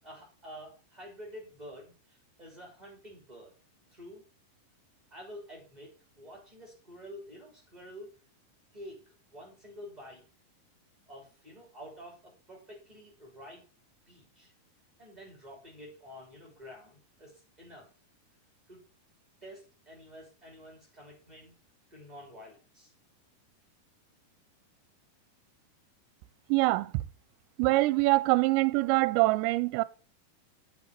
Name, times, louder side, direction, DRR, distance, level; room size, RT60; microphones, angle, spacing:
voice 1, 0.0-3.5 3.9-4.2 5.1-8.1 8.7-10.2 11.1-13.6 14.0-14.5 15.0-17.9 18.7-18.8 19.4-21.5 21.9-22.9, equal, 10° right, 2.5 m, -49 dB
voice 2, 26.5-26.9 27.6-29.8, right 21 dB, 80° right, 2.8 m, -24 dB
11.5 x 7.0 x 6.7 m
omnidirectional pair, 5.3 m